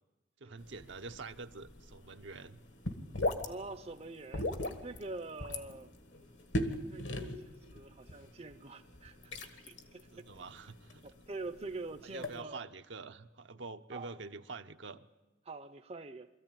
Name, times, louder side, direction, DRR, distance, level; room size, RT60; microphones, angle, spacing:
voice 1, 0.4-2.6 10.1-11.1 12.0-15.0, right 4 dB, 70° right, 0.7 m, -46 dB
sound 1, 0.6-12.4, left 1 dB, 70° left, 1.6 m, -40 dB
voice 2, 3.4-4.5 4.8-5.9 6.9-10.1 11.0-12.7 13.9-14.1 15.4-16.3, right 3 dB, 35° right, 0.6 m, -45 dB
22.5 x 14.0 x 9.0 m
head